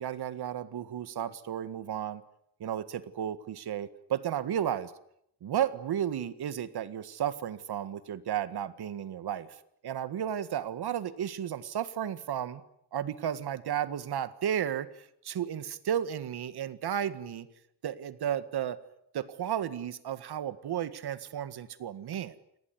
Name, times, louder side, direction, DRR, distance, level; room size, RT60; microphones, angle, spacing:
voice 1, 0.0-2.2 2.6-4.9 5.4-9.5 9.8-12.6 12.9-17.5 17.8-18.8 19.1-22.3, right 10 dB, 65° right, 13 dB, 1.8 m, -33 dB
28.5 x 19.5 x 9.6 m, 0.73 s
wide cardioid pair, 140°, 41 cm